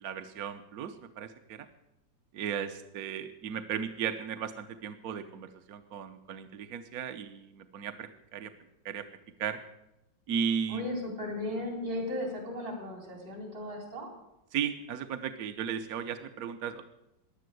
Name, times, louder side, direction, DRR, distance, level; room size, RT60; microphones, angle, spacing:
voice 1, 0.0-1.7 2.3-8.5 8.8-9.1 9.4-9.6 10.3-10.8 14.5-16.8, right 8 dB, 60° right, 7 dB, 1.2 m, -35 dB
voice 2, 10.7-14.1, left 1 dB, 80° right, 2 dB, 4.9 m, -36 dB
16.0 x 10.5 x 7.8 m, 0.89 s
omnidirectional pair, 2.0 m